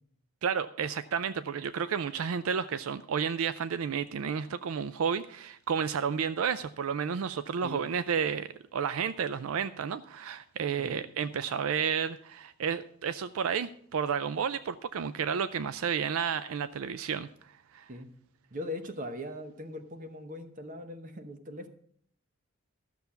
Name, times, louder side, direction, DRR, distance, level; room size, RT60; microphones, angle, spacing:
voice 1, 0.4-17.3 17.7-17.9, right 7 dB, 75° right, 14 dB, 0.4 m, -31 dB
voice 2, 18.5-21.7, left 1 dB, 40° right, 8 dB, 1.0 m, -40 dB
13.0 x 6.8 x 5.7 m, 0.63 s
head